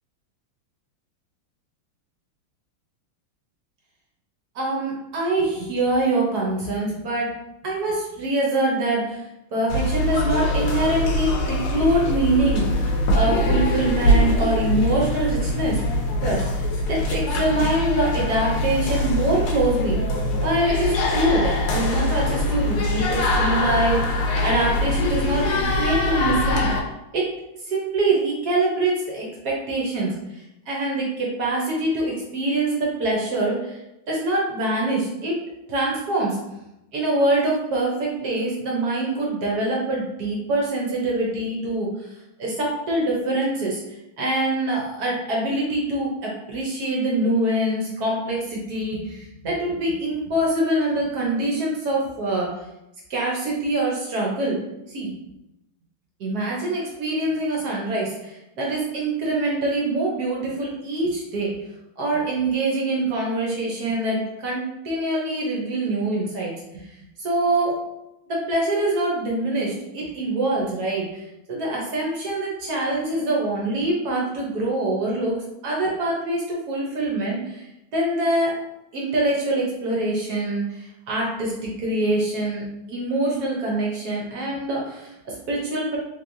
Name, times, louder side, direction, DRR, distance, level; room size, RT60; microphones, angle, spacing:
voice 1, 4.5-7.3 7.6-20.0 20.4-26.7 27.1-27.2 27.7-33.8 34.1-35.3 35.7-36.4 36.9-42.1 42.4-52.5 53.1-54.6 54.9-55.1 56.2-61.5 62.0-66.9 67.2-67.8 68.3-75.4 75.6-77.7 77.9-78.5 78.9-86.0, right 2 dB, 60° right, -3 dB, 1.1 m, -24 dB
sound 1, 9.7-26.8, left 1 dB, 85° left, 1.6 m, -23 dB
3.7 x 3.2 x 2.6 m, 0.89 s
omnidirectional pair, 2.3 m